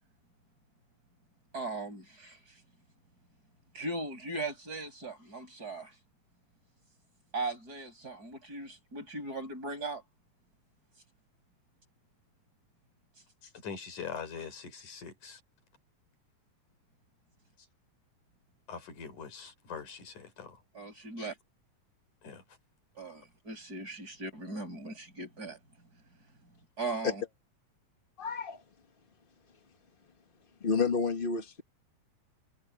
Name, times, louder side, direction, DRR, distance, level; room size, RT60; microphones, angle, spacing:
voice 1, 1.5-2.4 3.7-5.9 7.3-10.0 20.8-21.3 23.0-25.6 26.8-27.2, right 2 dB, 30° right, 7.0 m, -38 dB
voice 2, 13.4-15.4 17.6-17.7 18.7-20.6 21.2-21.4 22.2-22.6, left 6 dB, 90° left, 5.6 m, -43 dB
voice 3, 28.2-28.6 30.6-31.6, left 5 dB, 45° left, 0.6 m, -30 dB
omnidirectional pair, 3.4 m